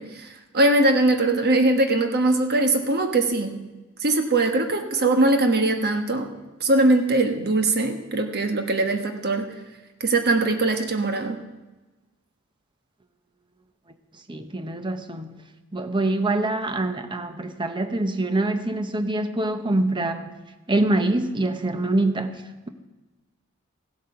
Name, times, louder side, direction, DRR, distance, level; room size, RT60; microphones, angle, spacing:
voice 1, 0.0-3.6 4.0-6.3 6.6-9.5 10.0-11.4, right 2 dB, 50° right, 5 dB, 1.3 m, -21 dB
voice 2, 14.3-15.4 15.7-20.3 20.7-22.7, right 2 dB, 20° right, 8 dB, 0.8 m, -25 dB
15.5 x 8.2 x 5.8 m, 1.2 s
head